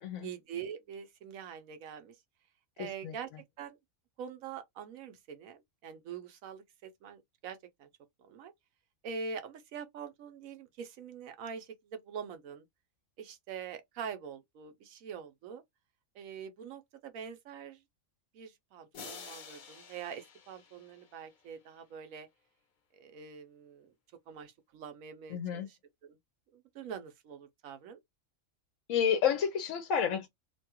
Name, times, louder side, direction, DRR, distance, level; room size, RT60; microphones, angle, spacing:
voice 1, 0.2-2.2 2.8-3.3 3.6-3.8 4.2-7.9 8.2-8.5 9.0-12.7 13.2-15.6 16.1-17.8 18.3-22.3 22.9-23.9 24.3-26.2 26.5-28.0, right 6 dB, 85° right, 1.1 m, -44 dB
voice 2, 2.8-3.1 25.3-25.7 28.9-30.3, left 8 dB, 75° left, 0.9 m, -30 dB
sound 1, 18.9-21.6, left 6 dB, 50° left, 0.6 m, -50 dB
2.8 x 2.3 x 2.8 m
omnidirectional pair, 1.4 m